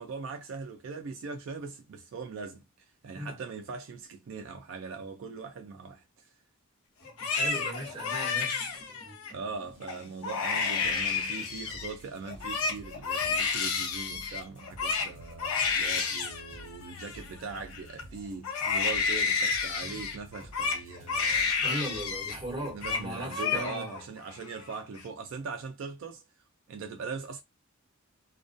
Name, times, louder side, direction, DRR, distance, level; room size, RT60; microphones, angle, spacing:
voice 1, 0.0-2.6 3.0-6.3 9.3-21.5 22.7-26.2 26.7-27.4, right 4 dB, 60° right, 0.3 m, -40 dB
Crying sobbing, 7.0-9.3 9.8-10.0 10.2-11.9 12.3-18.0 18.4-22.4 22.6-23.0 23.3-24.0 24.4-25.0, left 5 dB, 85° left, 0.5 m, -31 dB
sound 1, 7.0-23.6, right 1 dB, 55° left, 1.2 m, -52 dB
voice 2, 7.3-8.6 21.6-23.9, right 1 dB, 20° right, 1.1 m, -37 dB
2.2 x 2.2 x 2.5 m
head